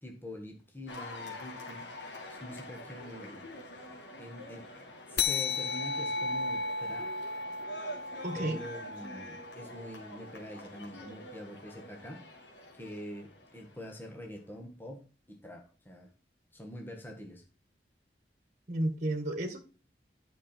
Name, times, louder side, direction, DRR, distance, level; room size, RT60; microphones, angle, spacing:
voice 1, 0.0-1.8 2.3-3.4 4.2-4.7 5.1-7.1 8.3-12.2 12.7-15.0 15.3-16.1 16.5-17.4, equal, 10° left, 2 dB, 1.7 m, -45 dB
Cheering / Applause, 0.9-14.3, left 1 dB, 80° left, 2.6 m, -46 dB
sound 1, 5.2-10.1, left 4 dB, 60° left, 0.6 m, -35 dB
voice 2, 8.2-8.6 18.7-19.6, right 1 dB, 40° right, 6 dB, 1.6 m, -32 dB
9.9 x 5.8 x 4.4 m, 0.36 s
head